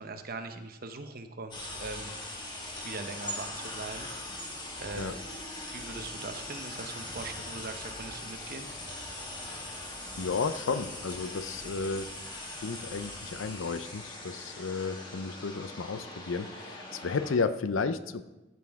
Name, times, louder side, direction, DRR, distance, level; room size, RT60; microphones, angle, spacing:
voice 1, 0.0-2.2 2.8-5.2 5.7-8.7, right 3 dB, 45° right, 7 dB, 0.8 m, -41 dB
sound 1, 1.5-17.4, left 1 dB, 25° left, 1.7 m, -41 dB
voice 2, 10.2-12.1 12.6-18.2, left 4 dB, 75° left, 12 dB, 0.5 m, -33 dB
14.0 x 7.2 x 3.6 m, 1.0 s
head